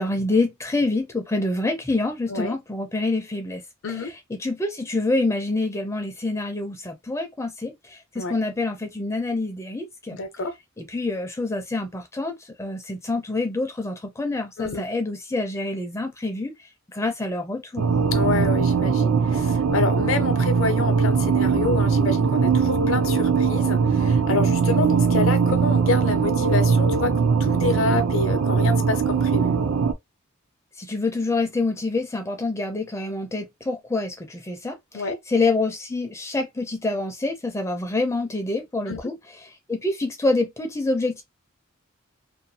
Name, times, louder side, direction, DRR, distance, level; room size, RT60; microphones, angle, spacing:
voice 1, 0.0-3.6 4.4-10.2 10.8-16.5 16.9-17.9 30.8-39.1 39.7-41.2, left 2 dB, 15° left, 0.4 m, -26 dB
voice 2, 10.1-10.5 14.6-14.8 18.1-29.5 34.9-35.2 38.9-39.0, left 4 dB, 70° left, 0.6 m, -28 dB
sound 1, 17.8-29.9, right 5 dB, 75° right, 0.5 m, -21 dB
2.5 x 2.2 x 2.7 m
head